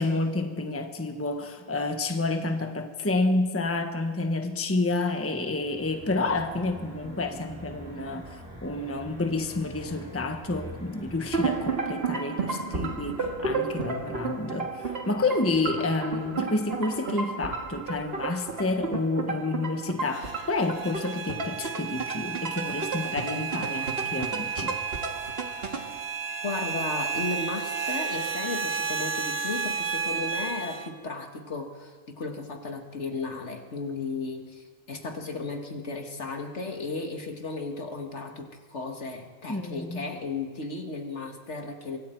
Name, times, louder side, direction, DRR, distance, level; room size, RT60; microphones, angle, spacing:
voice 1, 0.0-24.7 39.5-40.1, left 2 dB, 10° left, 6 dB, 1.1 m, -29 dB
sound 1, 5.6-11.7, equal, 10° right, 6.6 m, -44 dB
sound 2, 11.3-26.0, right 4 dB, 45° right, 2.1 m, -32 dB
sound 3, 20.1-30.9, right 5 dB, 80° right, 2.0 m, -32 dB
voice 2, 26.4-42.0, left 3 dB, 55° left, 3 dB, 2.1 m, -35 dB
24.5 x 24.5 x 4.6 m, 1.5 s
omnidirectional pair, 1.5 m